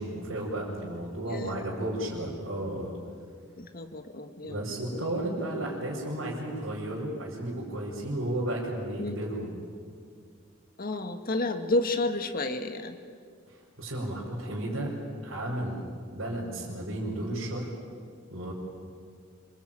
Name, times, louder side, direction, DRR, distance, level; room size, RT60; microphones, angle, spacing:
voice 1, 0.0-3.0 4.4-9.5 13.5-14.9 15.2-17.7 18.3-18.5, right 1 dB, 75° right, -6 dB, 5.2 m, -33 dB
voice 2, 1.3-1.7 3.6-4.6 4.9-5.1 9.0-9.2 10.8-13.0, left 2 dB, 45° left, 6 dB, 1.8 m, -31 dB
26.5 x 22.0 x 9.0 m, 2.1 s
head